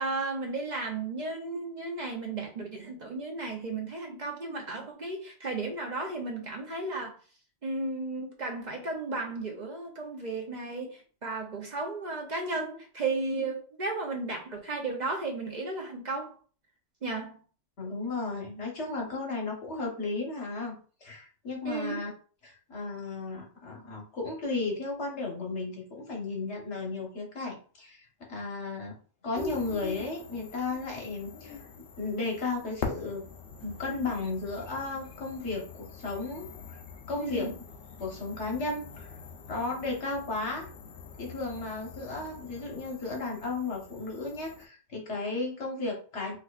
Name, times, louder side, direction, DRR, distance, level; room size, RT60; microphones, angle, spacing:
voice 1, 0.0-7.1 7.6-16.3 17.0-17.4 21.6-22.0 37.2-37.5, right 3 dB, 50° right, 0 dB, 0.7 m, -34 dB
voice 2, 17.8-22.1 22.4-29.0 29.2-31.6 32.0-33.3 33.6-36.8 37.1-37.5 38.0-39.1 39.5-40.7 41.2-46.4, left 3 dB, 80° left, 0 dB, 1.4 m, -34 dB
sound 1, 29.3-44.7, left 5 dB, 65° left, 0.8 m, -43 dB
4.4 x 2.3 x 2.3 m, 0.40 s
omnidirectional pair, 1.1 m